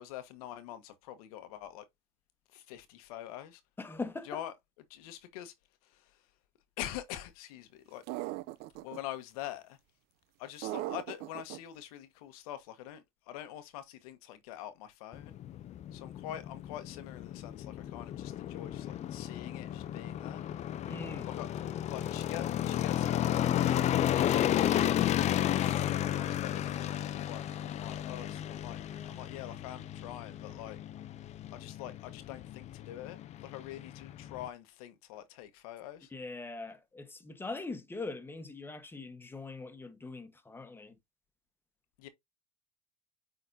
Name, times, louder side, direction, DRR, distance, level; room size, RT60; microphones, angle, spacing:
voice 1, 0.0-1.9 2.5-3.6 4.2-4.5 4.9-5.5 5.8-6.3 6.8-8.0 8.8-9.8 10.4-15.3 15.9-20.4 21.2-30.8 31.5-36.1 42.0-42.1, left 12 dB, 85° left, 1.3 m, -45 dB
voice 2, 3.8-4.4 20.9-21.3 36.1-40.9, left 3 dB, 10° left, 1.2 m, -41 dB
sound 1, 8.1-9.0 10.6-11.6, right 17 dB, 65° right, 0.4 m, -38 dB
sound 2, 15.1-34.5, left 11 dB, 40° left, 0.6 m, -33 dB
9.3 x 3.9 x 2.7 m
supercardioid pair, 125°, 18 cm